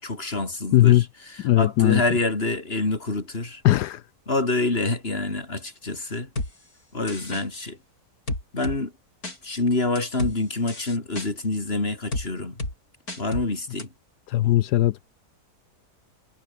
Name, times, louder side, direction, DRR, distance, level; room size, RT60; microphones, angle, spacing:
voice 1, 0.0-3.6 4.3-6.3 6.9-7.8 8.5-8.9 9.4-12.6 13.2-13.9, left 2 dB, 35° left, 4.0 m, -27 dB
voice 2, 0.7-1.0 1.4-2.0 3.6-4.0 14.3-15.0, left 14 dB, 80° left, 1.2 m, -18 dB
sound 1, 6.4-6.5 7.1-7.4 8.3-8.8 9.2-9.4 10.0-10.3 10.7-11.3 12.1-12.3 12.6-12.7 13.1-13.5 13.8-13.9, left 2 dB, 60° left, 7.5 m, -30 dB
omnidirectional pair, 1.8 m